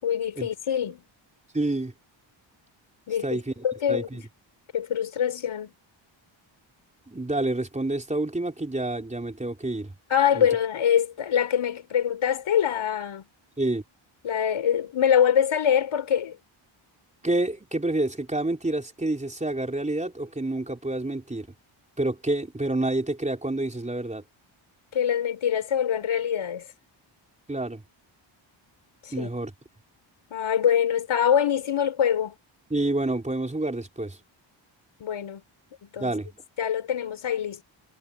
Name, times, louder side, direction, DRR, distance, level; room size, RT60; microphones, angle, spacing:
voice 1, 0.0-1.0 3.1-4.2 4.7-5.7 10.1-13.2 14.2-16.4 24.9-26.6 29.0-29.3 30.3-32.3 35.0-35.4 35.8-36.1 36.6-37.6, left 9 dB, 80° left, 4.8 m, -24 dB
voice 2, 1.5-1.9 3.2-4.2 7.1-9.9 10.3-10.5 13.6-13.8 17.2-21.5 22.0-24.2 27.5-27.8 29.1-29.5 32.7-34.2 36.0-36.4, right 2 dB, 15° right, 4.2 m, -28 dB
cardioid pair, 100°, 48 cm